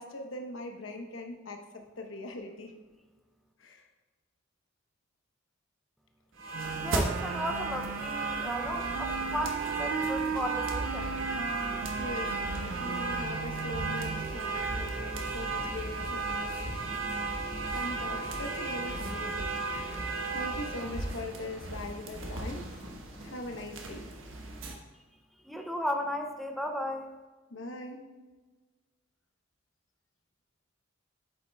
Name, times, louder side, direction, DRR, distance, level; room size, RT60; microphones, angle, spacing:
voice 1, 0.0-2.7 3.6-3.8 7.0-7.1 11.7-16.7 17.7-20.0 20.3-22.6 23.2-24.1 27.5-28.1, left 1 dB, 80° left, 3 dB, 0.9 m, -41 dB
sound 1, 6.4-24.7, right 3 dB, 85° right, 1.1 m, -35 dB
Wind instrument woodwind instrument, 6.5-14.4, right 6 dB, 70° right, 0.3 m, -37 dB
voice 2, 6.8-11.1 25.4-27.1, equal, ahead, 3 dB, 0.5 m, -35 dB
sound 2, 13.9-23.9, left 1 dB, 50° left, 1.9 m, -53 dB
8.5 x 7.4 x 2.3 m, 1.3 s
head